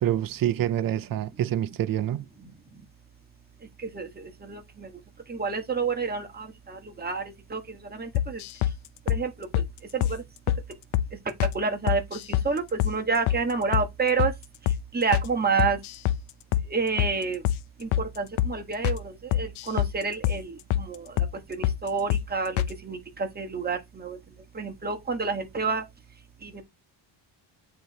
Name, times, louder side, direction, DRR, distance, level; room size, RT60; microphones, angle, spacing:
voice 1, 0.0-2.3, right 11 dB, 50° right, 0.6 m, -26 dB
voice 2, 3.9-4.9 5.3-7.2 7.5-7.6 8.0-8.4 9.1-9.3 9.9-10.1 11.5-14.3 14.9-15.8 16.7-17.4 17.8-17.9 18.2-20.5 20.9-21.1 21.6-24.2 24.5-25.8 26.4-26.6, right 4 dB, 20° right, 1.3 m, -29 dB
sound 1, 8.1-8.8 9.1-9.2 9.5-9.7 10.0-10.2 10.5-10.6 10.9-11.1 11.4-11.6 11.9-12.5 12.8-13.0 13.3-13.4 13.7-13.9 14.2-14.4 14.7-14.8 15.1-15.3 15.6-16.2 16.5-16.7 17.0-17.1 17.4-17.6 17.9-18.1 18.4-18.5 18.8-19.0 19.3-19.9 20.2-20.4 20.7-20.9 21.2-21.3 21.6-21.8 22.1-22.3 22.6-22.7, left 12 dB, 85° left, 0.7 m, -25 dB
8.7 x 3.1 x 4.0 m
cardioid pair, 130°, 46 cm